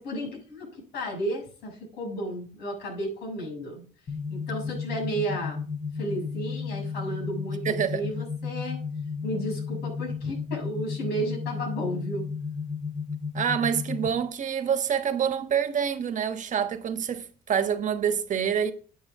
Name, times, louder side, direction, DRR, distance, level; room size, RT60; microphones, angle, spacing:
voice 1, 0.0-3.8 4.3-5.6 6.0-8.8 9.2-12.2, right 1 dB, 75° left, 7.0 m, -33 dB
sound 1, 4.1-14.1, left 5 dB, 50° left, 2.7 m, -33 dB
voice 2, 7.6-8.1 13.3-18.7, right 8 dB, 50° right, 1.3 m, -27 dB
12.0 x 8.9 x 3.7 m
cardioid pair, 110°, 17 cm